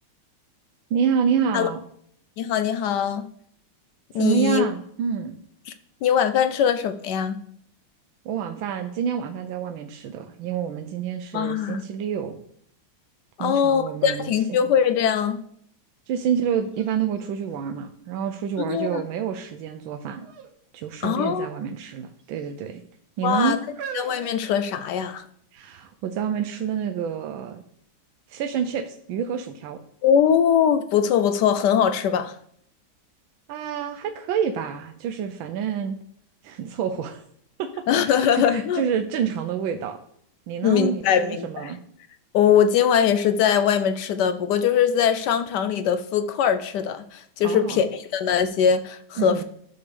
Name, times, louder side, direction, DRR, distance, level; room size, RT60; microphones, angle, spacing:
voice 1, 0.9-1.8 4.1-5.4 8.2-12.4 13.4-14.6 16.1-20.3 20.7-22.8 23.2-23.6 25.5-27.6 28.3-29.8 33.5-36.0 36.4-37.2 37.6-37.7 38.0-40.0 40.5-41.8 47.4-47.9 49.2-49.4, right 8 dB, 85° right, 6 dB, 1.4 m, -28 dB
voice 2, 2.4-3.2 4.1-4.6 5.7-5.8 6.0-7.4 11.3-11.8 13.4-15.4 18.7-19.0 21.0-21.5 23.2-23.6 23.9-25.2 30.0-32.4 37.9-38.8 40.6-41.7 42.3-49.4, left 8 dB, 75° left, 10 dB, 1.0 m, -21 dB
sound 1, 16.2-16.3 16.7-18.3 18.9-19.4 20.2-20.6 20.8-21.0 21.9-22.5 23.2-25.3 26.0-26.1, right 6 dB, 60° right, 1.4 m, -41 dB
11.5 x 6.8 x 3.4 m, 0.69 s
omnidirectional pair, 2.1 m